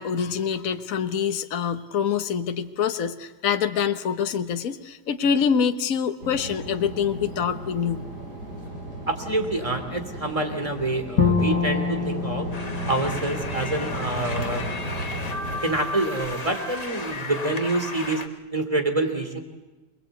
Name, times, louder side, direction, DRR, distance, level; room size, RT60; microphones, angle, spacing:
voice 1, 0.0-8.0, left 7 dB, 55° left, 8 dB, 1.5 m, -25 dB
sound 1, 6.2-15.6, right 1 dB, 70° right, 7.8 m, -35 dB
voice 2, 9.1-12.5 12.8-14.6 15.6-19.4, right 2 dB, 20° right, 6 dB, 3.0 m, -27 dB
Bowed string instrument, 11.2-14.3, left 5 dB, 75° left, 2.1 m, -26 dB
sound 2, 12.5-18.3, left 2 dB, 25° left, 1.3 m, -34 dB
28.0 x 21.0 x 8.3 m, 1.2 s
omnidirectional pair, 1.8 m